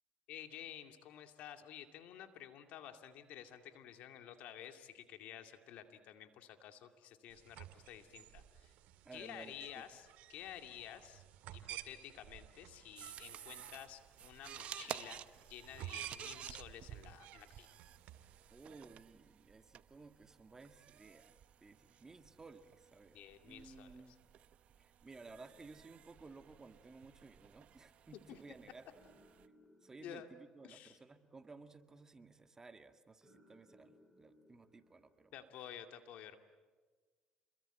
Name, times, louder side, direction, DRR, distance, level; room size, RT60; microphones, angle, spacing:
voice 1, 0.3-8.7 9.1-11.2 11.5-15.2 15.5-17.7 23.1-24.0 28.1-28.4 30.0-30.3 30.6-31.0 35.3-36.4, left 10 dB, 75° left, 7 dB, 2.4 m, -52 dB
sound 1, 7.3-18.6, right 12 dB, 80° right, 2.1 m, -53 dB
voice 2, 9.1-9.8 18.5-23.2 23.4-24.2 24.8-28.9 29.8-35.4, right 3 dB, 25° right, 8 dB, 1.8 m, -56 dB
sound 2, 13.0-29.5, right 10 dB, 60° right, 1.0 m, -53 dB
sound 3, 25.3-35.6, equal, ahead, 7.3 m, -70 dB
29.0 x 22.0 x 9.1 m, 1.4 s
cardioid pair, 90°, 2 cm